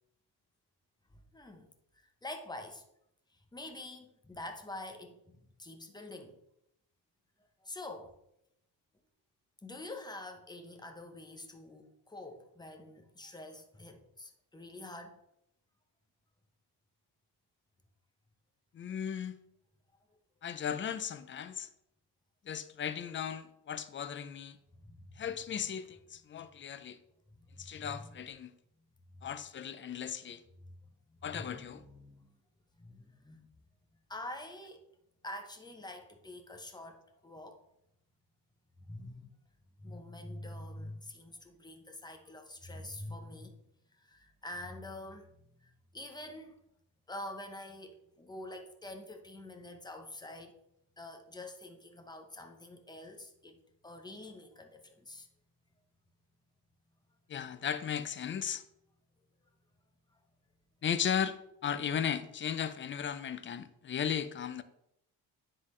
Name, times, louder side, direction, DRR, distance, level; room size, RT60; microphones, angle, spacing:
voice 1, 1.3-1.7 1.9-2.8 3.3-6.4 7.6-8.2 9.6-15.2 24.7-25.1 25.6-25.7 27.3-28.2 28.8-28.9 29.1-29.2 30.6-32.3 32.8-33.5 34.1-34.8 35.2-37.6 38.8-39.3 39.8-43.6 43.9-46.6 47.1-50.6 51.0-53.6 53.8-55.3, left 1 dB, 10° left, 0.8 m, -46 dB
voice 2, 18.7-19.4 20.4-21.7 22.4-24.6 25.2-27.0 27.6-28.5 29.2-30.4 31.2-31.8 57.3-58.6 60.8-61.4 61.6-64.6, left 8 dB, 30° left, 0.4 m, -36 dB
9.6 x 3.9 x 3.2 m
cardioid pair, 110°, 42 cm